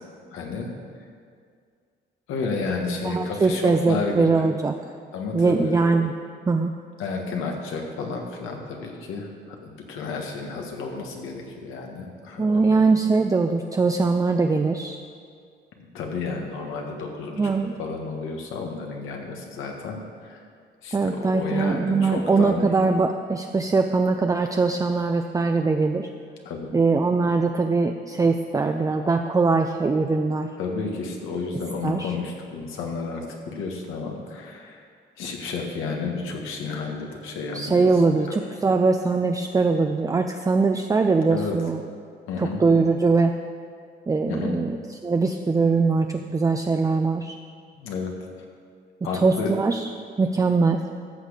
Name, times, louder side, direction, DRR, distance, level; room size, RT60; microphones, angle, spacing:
voice 1, 0.3-0.7 2.3-4.5 5.1-5.8 7.0-12.8 15.9-17.5 17.8-20.4 20.8-22.7 26.4-26.7 30.6-34.8 35.2-37.8 38.1-38.3 41.3-41.6 42.3-42.6 44.3-44.6 47.7-48.2 49.0-49.5, left 4 dB, 90° left, 1 dB, 1.6 m, -31 dB
voice 2, 3.0-4.8 5.3-6.1 6.5-6.7 12.4-15.0 17.4-17.7 20.9-26.1 26.7-30.5 31.8-32.1 37.5-41.8 42.4-43.3 44.1-44.8 45.0-47.4 49.1-49.9 50.2-50.8, right 4 dB, 15° right, 5 dB, 0.5 m, -21 dB
14.5 x 6.5 x 5.1 m, 2.2 s
cardioid pair, 90°, 20 cm